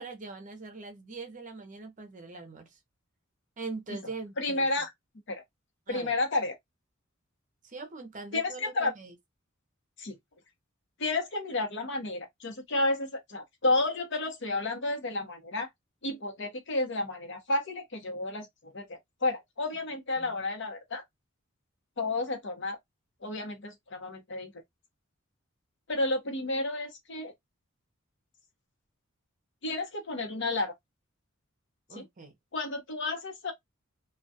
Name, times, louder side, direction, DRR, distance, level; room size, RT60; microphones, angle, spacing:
voice 1, 0.0-2.8 3.6-4.7 5.9-6.1 7.6-9.1 20.2-20.4 31.9-32.3, right 3 dB, 40° right, 0.7 m, -42 dB
voice 2, 4.4-4.9 5.3-5.4 5.9-6.5 8.3-8.9 10.0-10.2 11.0-15.7 16.0-21.0 22.0-22.8 23.2-24.5 25.9-27.3 29.6-30.7 31.9-32.0 32.5-33.5, left 2 dB, 60° left, 0.8 m, -31 dB
2.3 x 2.2 x 2.6 m
head